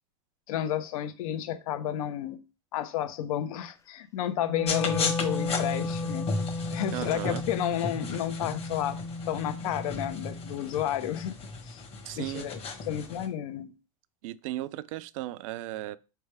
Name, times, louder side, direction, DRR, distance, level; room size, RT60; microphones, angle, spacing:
voice 1, 0.5-2.4 2.7-6.3 6.7-9.0 9.3-11.3 11.7-11.8 12.1-12.6 12.9-13.7, left 11 dB, 75° left, 0.7 m, -31 dB
Wind instrument woodwind instrument, 4.3-10.6, left 3 dB, 20° left, 0.3 m, -34 dB
sound 1, 4.7-13.3, left 4 dB, 35° left, 1.3 m, -36 dB
voice 2, 6.9-7.4 8.0-8.1 12.0-12.5 14.2-16.0, right 15 dB, 65° right, 0.4 m, -36 dB
4.4 x 3.3 x 3.3 m
supercardioid pair, 115°, 18 cm